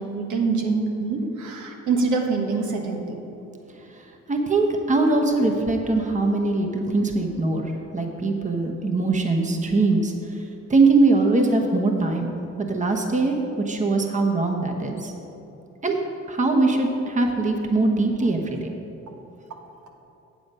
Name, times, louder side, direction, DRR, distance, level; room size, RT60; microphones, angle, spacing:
voice 1, 0.0-3.0, right 4 dB, 85° right, 2 dB, 1.4 m, -25 dB
voice 2, 4.3-10.1 10.7-13.4 13.7-15.1 15.8-15.9 16.3-18.7, right 3 dB, 25° right, 3 dB, 1.1 m, -22 dB
9.3 x 7.8 x 5.5 m, 2.9 s
cardioid pair, 105°, 29 cm